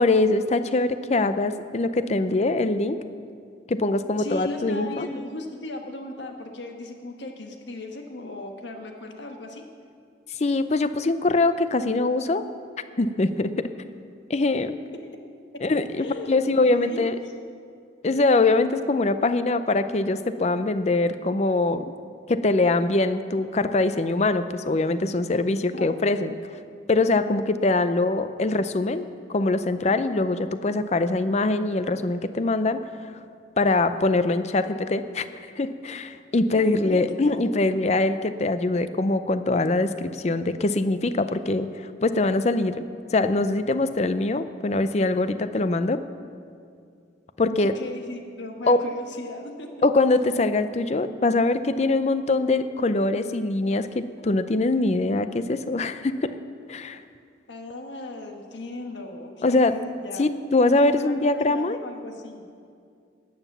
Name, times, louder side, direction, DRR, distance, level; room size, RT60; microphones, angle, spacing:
voice 1, 0.0-3.0 3.7-5.1 10.4-12.4 13.0-13.7 14.3-14.7 15.6-17.1 18.0-21.9 22.3-26.4 26.9-32.8 33.6-35.2 35.6-42.8 43.1-46.0 47.4-47.8 48.7-48.8 49.8-56.4 56.7-57.0 59.4-59.8 60.2-61.8, left 2 dB, 40° left, 11 dB, 0.5 m, -23 dB
voice 2, 4.2-9.6 16.0-16.3 16.6-17.3 25.7-26.0 36.8-37.0 47.6-49.7 57.5-60.3 60.8-62.5, left 2 dB, 90° left, 3 dB, 1.3 m, -37 dB
12.5 x 9.2 x 7.2 m, 2.3 s
head